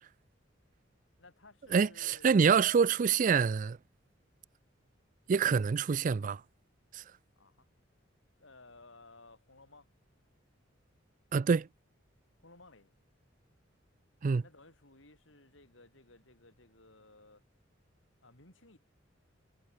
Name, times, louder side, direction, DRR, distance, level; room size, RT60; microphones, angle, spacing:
voice 1, 1.2-2.3 7.4-7.7 8.4-9.9 12.4-12.9 14.4-17.4 18.2-18.8, left 2 dB, 80° left, 7.7 m, -58 dB
voice 2, 1.7-3.8 5.3-6.4 6.9-7.0 11.3-11.7 14.2-14.4, right 6 dB, 45° right, 0.4 m, -26 dB
head